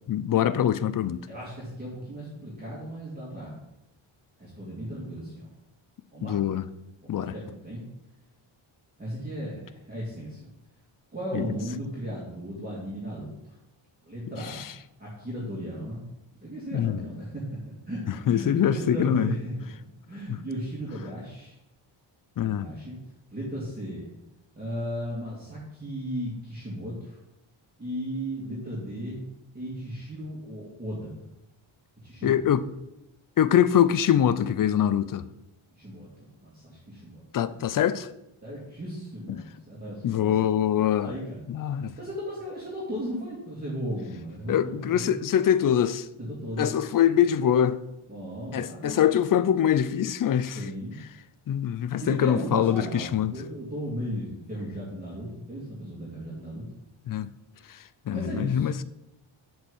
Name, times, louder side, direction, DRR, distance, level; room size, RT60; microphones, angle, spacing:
voice 1, 0.1-1.3 6.2-6.7 7.1-7.3 11.3-11.4 14.4-14.7 16.7-17.0 18.3-19.3 20.3-20.4 22.4-22.7 32.2-32.7 33.4-35.3 37.3-38.1 39.3-39.4 40.0-41.1 41.5-41.9 44.5-46.1 46.6-47.8 48.5-50.6 51.5-53.4 57.1-57.3 57.7-57.8 58.1-58.8, left 10 dB, 45° left, 0.5 m, -24 dB
voice 2, 1.3-3.6 4.4-5.5 6.1-6.4 7.0-7.8 9.0-10.5 11.1-13.6 14.0-14.7 15.0-16.0 16.4-19.5 20.1-21.5 22.4-23.0 23.3-24.1 24.6-27.2 27.8-29.2 29.5-31.2 32.0-32.6 35.7-37.6 38.4-40.3 41.0-41.4 42.0-45.2 46.2-46.9 48.1-49.0 50.6-51.0 52.0-56.7 58.1-58.8, equal, 20° right, 2.3 m, -36 dB
7.6 x 4.5 x 7.0 m
wide cardioid pair, 120°, 50 cm